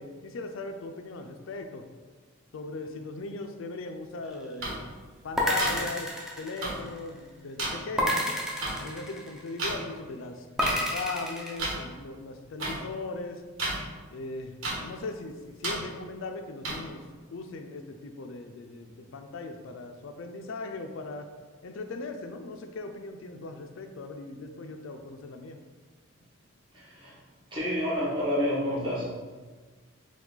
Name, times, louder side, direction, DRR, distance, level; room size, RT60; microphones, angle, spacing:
voice 1, 0.0-1.8 2.5-4.9 5.2-6.1 6.4-8.4 8.8-13.4 14.1-14.5 14.8-17.0 17.3-21.3 21.6-25.6, left 3 dB, 70° left, 6 dB, 0.4 m, -39 dB
sound 1, 4.6-4.7 5.6-5.7 6.6-6.7 7.6-7.7 8.6-8.7 9.6-9.7 10.6-10.7 11.6-11.7 12.6-12.7 13.6-13.8 14.6-14.7 15.6-15.7 16.6-16.7, right 2 dB, 80° right, 1.2 m, -30 dB
sound 2, 5.4-7.1 8.0-9.6 10.6-11.6, left 1 dB, 5° right, 0.5 m, -29 dB
voice 2, 26.7-27.2 27.5-29.0, equal, 25° right, -7 dB, 1.2 m, -29 dB
4.6 x 2.3 x 3.8 m, 1.4 s
head